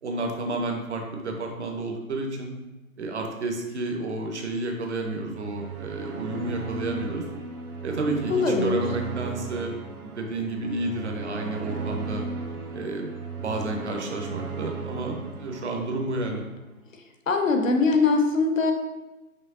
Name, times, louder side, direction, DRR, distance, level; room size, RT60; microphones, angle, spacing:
voice 1, 0.0-2.5 3.0-7.2 7.8-12.2 12.7-13.1 13.4-16.4, right 2 dB, 50° right, 2 dB, 0.7 m, -31 dB
sound 1, 5.2-16.6, right 4 dB, 85° right, 0.8 m, -36 dB
voice 2, 8.3-8.8 17.3-18.7, left 4 dB, 60° left, 5 dB, 0.7 m, -22 dB
5.6 x 3.1 x 2.5 m, 1.1 s
hypercardioid pair, 180°, 44 cm